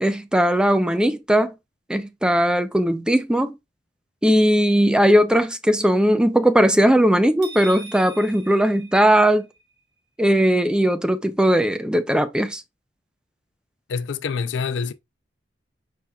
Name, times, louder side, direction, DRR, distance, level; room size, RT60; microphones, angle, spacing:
voice 1, 0.0-1.5 1.9-3.6 4.2-9.5 10.2-12.6, equal, 5° right, 0.4 m, -18 dB
sound 1, 7.4-9.6, right 2 dB, 70° right, 2.1 m, -41 dB
voice 2, 13.9-14.9, left 5 dB, 85° left, 0.4 m, -26 dB
4.9 x 4.2 x 2.3 m
head